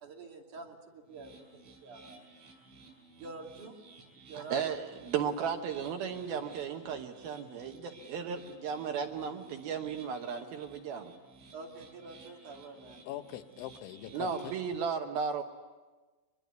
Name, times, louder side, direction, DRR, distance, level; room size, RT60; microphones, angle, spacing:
voice 1, 0.0-2.3 3.2-4.6 11.5-13.0, right 3 dB, 50° right, 0 dB, 3.6 m, -47 dB
sound 1, 1.1-14.6, right 3 dB, 90° right, 9.4 m, -56 dB
voice 2, 4.3-11.1 14.1-15.4, right 6 dB, 70° right, 5 dB, 2.5 m, -35 dB
voice 3, 13.1-14.5, left 13 dB, 90° left, 10 dB, 3.4 m, -42 dB
24.5 x 22.0 x 9.4 m, 1.3 s
omnidirectional pair, 5.2 m